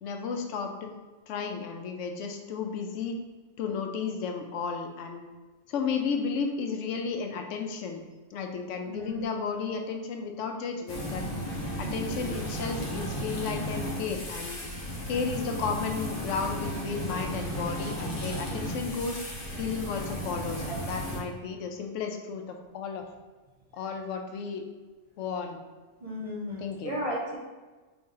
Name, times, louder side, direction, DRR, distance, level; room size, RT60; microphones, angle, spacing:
voice 1, 0.0-0.9 1.3-3.2 3.6-5.3 5.7-8.0 8.3-11.2 11.8-14.6 15.1-19.2 19.6-23.1 23.7-24.6 25.2-25.6 26.6-27.0, left 5 dB, 80° left, 4 dB, 1.0 m, -33 dB
voice 2, 8.9-9.2 26.0-27.4, left 1 dB, 35° right, -4 dB, 0.6 m, -34 dB
sound 1, 10.9-21.2, equal, 50° left, 1.1 m, -34 dB
4.1 x 3.3 x 3.8 m, 1.3 s
omnidirectional pair, 1.2 m